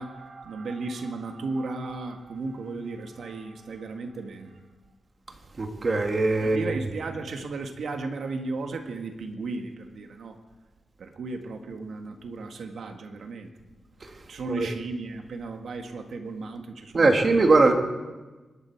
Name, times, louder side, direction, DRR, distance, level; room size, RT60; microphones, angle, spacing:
voice 1, 0.0-4.6 6.4-10.4 11.0-13.5 14.3-17.5, right 3 dB, 75° right, 5 dB, 1.7 m, -35 dB
voice 2, 5.6-6.7 14.5-14.7 16.9-17.7, right 3 dB, 35° right, 4 dB, 1.8 m, -21 dB
25.5 x 12.5 x 4.6 m, 1.2 s
wide cardioid pair, 135°, 0 cm